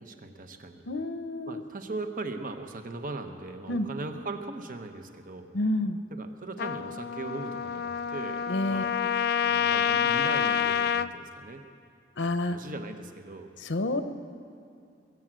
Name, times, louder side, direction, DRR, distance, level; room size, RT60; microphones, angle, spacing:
voice 1, 0.0-0.8 1.5-5.5 6.1-8.9 9.4-11.6 12.2-13.5, right 3 dB, 50° right, 6 dB, 1.0 m, -39 dB
voice 2, 0.9-1.6 3.7-3.9 5.5-6.0 8.5-8.9 12.2-12.6 13.7-14.0, left 2 dB, 85° left, 9 dB, 0.9 m, -28 dB
Trumpet, 6.6-11.1, left 8 dB, 60° left, 0.3 m, -27 dB
21.5 x 7.9 x 7.6 m, 2.5 s
head